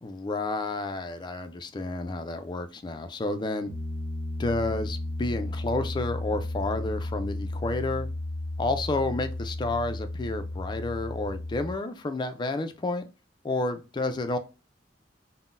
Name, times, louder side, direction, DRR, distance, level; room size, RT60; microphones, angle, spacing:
voice 1, 0.0-3.7 4.4-8.1 8.6-13.1 13.4-14.4, left 2 dB, 25° left, 0.3 m, -30 dB
Piano, 3.7-11.7, left 1 dB, 70° right, 0.9 m, -34 dB
3.7 x 2.1 x 2.5 m
head